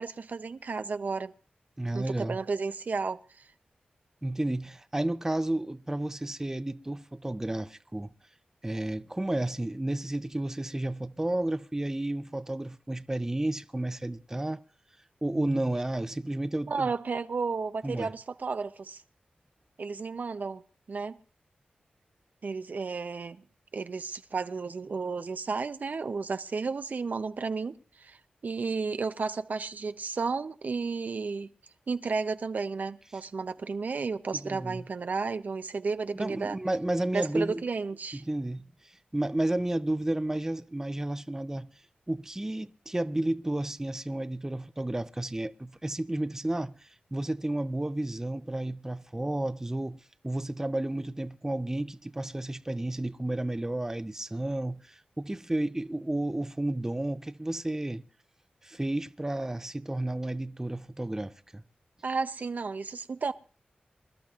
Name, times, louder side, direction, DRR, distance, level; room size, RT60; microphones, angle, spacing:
voice 1, 0.0-1.3 1.9-3.5 15.3-15.7 16.7-19.0 19.8-20.6 20.9-21.2 22.4-23.4 23.7-28.2 28.4-31.5 31.9-36.6 37.1-38.2 62.0-63.3, right 4 dB, 60° right, 0.5 m, -33 dB
voice 2, 1.8-2.4 4.2-8.1 8.6-14.6 15.2-16.9 17.8-18.1 34.4-34.8 36.1-37.6 38.1-41.7 42.1-58.0 58.6-61.6, right 1 dB, 15° right, 0.6 m, -32 dB
26.5 x 12.0 x 2.4 m
cardioid pair, 60°, 3 cm